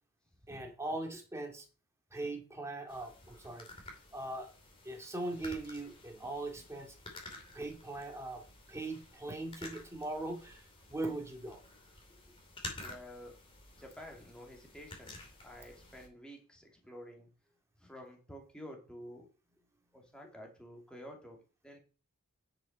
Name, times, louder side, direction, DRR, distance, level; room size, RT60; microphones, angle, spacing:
voice 1, 0.5-1.6 2.1-3.7 4.1-4.5 4.8-6.9 7.5-8.4 8.7-10.6 10.9-11.6, right 2 dB, 15° right, 2 dB, 2.3 m, -40 dB
sound 1, 2.9-16.1, left 2 dB, 25° left, 2.6 m, -51 dB
voice 2, 12.8-13.4 13.8-17.3 17.8-19.3 19.9-21.8, equal, 5° left, 0 dB, 2.5 m, -50 dB
10.5 x 6.3 x 5.3 m, 0.35 s
head